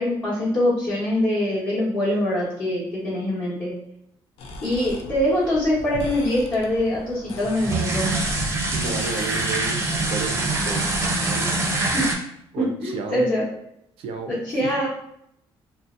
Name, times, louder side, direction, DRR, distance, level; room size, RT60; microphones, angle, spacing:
voice 1, 0.0-3.7 4.6-8.1 11.9-12.0 12.6-13.5 14.3-14.9, left 1 dB, 45° left, -10 dB, 0.9 m, -23 dB
sound 1, 4.4-11.2, left 2 dB, 80° left, 0.4 m, -37 dB
sound 2, 7.4-12.1, right 2 dB, 30° right, 0.5 m, -24 dB
voice 2, 8.7-11.5 12.5-13.3 14.0-14.7, right 4 dB, 80° right, 4 dB, 0.4 m, -32 dB
2.6 x 2.0 x 2.4 m, 0.75 s
cardioid pair, 120°, 10 cm